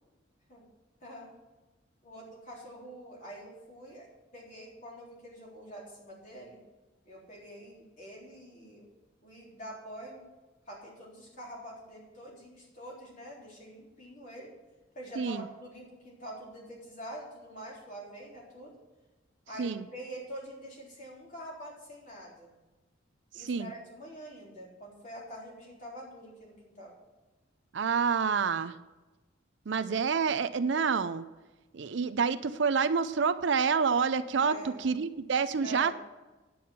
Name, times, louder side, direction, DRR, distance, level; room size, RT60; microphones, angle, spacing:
voice 1, 2.0-4.1 4.3-6.6 7.1-8.9 9.2-10.2 10.7-14.5 14.9-18.8 19.5-22.5 23.3-26.9 34.4-34.9 35.6-36.0, right 1 dB, 40° left, -4 dB, 3.6 m, -45 dB
voice 2, 15.2-15.5 19.6-19.8 23.3-23.7 27.7-28.8 29.7-31.3 31.7-36.0, right 5 dB, 65° right, 12 dB, 0.5 m, -28 dB
9.3 x 8.5 x 5.7 m, 1.1 s
head